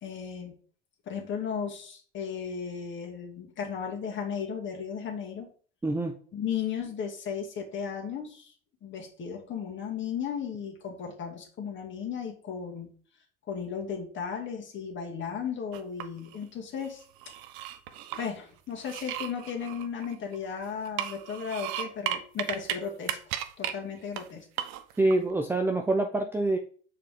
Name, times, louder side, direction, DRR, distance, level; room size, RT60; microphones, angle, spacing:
voice 1, 0.0-0.6 1.1-5.5 6.3-8.5 8.8-12.9 13.5-17.0 18.2-23.2 23.6-24.5, left 7 dB, 35° left, 2 dB, 2.0 m, -35 dB
voice 2, 5.8-6.1 25.0-26.6, right 2 dB, 5° right, 4 dB, 0.5 m, -26 dB
sound 1, 15.7-16.4 16.8-18.3 18.8-20.4 20.9-22.8 23.0-23.7 24.2-24.3 24.6-25.1, right 12 dB, 55° right, 0.9 m, -35 dB
6.4 x 4.8 x 3.6 m, 0.44 s
hypercardioid pair, 90°, 35 cm